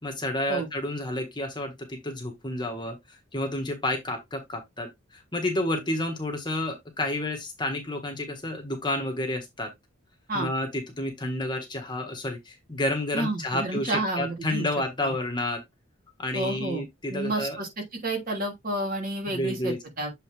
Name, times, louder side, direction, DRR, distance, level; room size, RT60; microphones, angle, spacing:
voice 1, 0.0-9.7 10.3-15.6 16.2-17.6 19.3-19.8, left 1 dB, 20° left, 1.5 m, -30 dB
voice 2, 13.1-14.7 15.0-15.1 16.3-16.8 17.1-17.7 18.0-20.1, right 1 dB, 45° right, 3.0 m, -30 dB
7.9 x 4.1 x 3.4 m
head